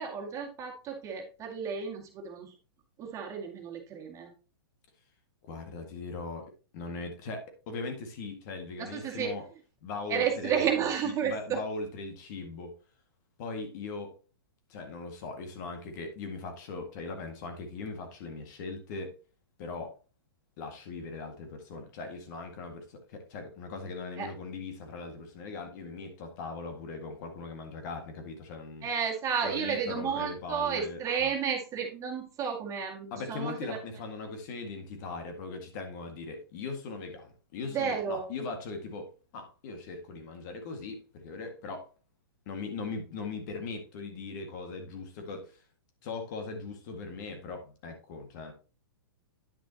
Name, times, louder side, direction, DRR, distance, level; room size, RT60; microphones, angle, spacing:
voice 1, 0.0-2.5 3.0-4.3 8.8-9.3 10.1-11.6 24.2-24.3 28.8-33.8 37.7-38.3, right 7 dB, 25° right, 1 dB, 2.0 m, -32 dB
voice 2, 5.4-9.4 9.8-10.7 11.0-12.7 13.4-14.1 14.7-19.1 19.6-20.0 20.6-28.9 29.4-31.3 33.1-41.9 42.5-45.6 46.0-48.5, left 3 dB, 50° left, 6 dB, 1.9 m, -39 dB
10.0 x 6.1 x 2.9 m, 0.34 s
hypercardioid pair, 125°, 12 cm